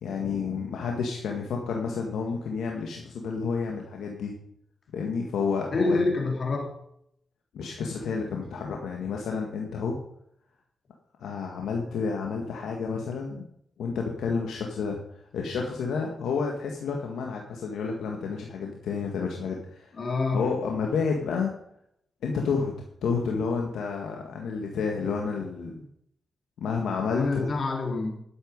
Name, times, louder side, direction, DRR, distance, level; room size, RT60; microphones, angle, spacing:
voice 1, 0.0-4.4 4.9-6.0 7.5-9.9 11.2-13.5 13.8-15.0 15.3-19.9 20.3-21.5 22.2-22.7 23.0-25.9 26.6-27.5, left 5 dB, 85° left, 1 dB, 1.7 m, -30 dB
voice 2, 5.7-6.8 19.9-20.4 27.1-28.2, left 3 dB, 55° left, 2 dB, 3.6 m, -27 dB
11.5 x 8.2 x 5.3 m, 0.71 s
supercardioid pair, 55°, 0 cm